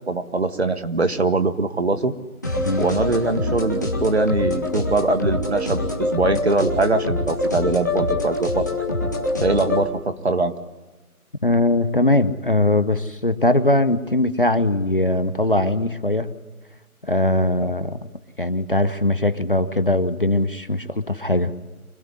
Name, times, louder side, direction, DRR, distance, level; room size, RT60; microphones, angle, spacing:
voice 1, 0.1-2.1 2.8-8.7 9.4-10.5 17.6-17.7, right 3 dB, 45° right, 9 dB, 1.4 m, -22 dB
sound 1, 2.4-9.8, left 2 dB, 10° left, 1.3 m, -25 dB
voice 2, 11.4-16.3 17.0-18.0 18.4-21.5, left 1 dB, 40° left, 12 dB, 0.8 m, -20 dB
25.5 x 17.5 x 9.7 m, 1.2 s
figure-of-eight pair, 170°, 44 cm